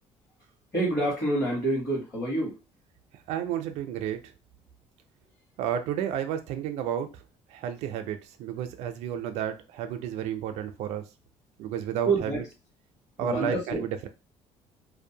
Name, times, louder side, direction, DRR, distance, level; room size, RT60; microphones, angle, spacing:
voice 1, 0.7-2.6 12.0-12.4 13.2-13.8, right 2 dB, 30° left, -6 dB, 1.3 m, -27 dB
voice 2, 3.3-4.2 5.6-7.2 7.5-11.0 11.6-12.4 13.2-14.1, right 9 dB, 80° right, 7 dB, 0.4 m, -31 dB
2.6 x 2.0 x 2.7 m, 0.29 s
cardioid pair, 160°, 11 cm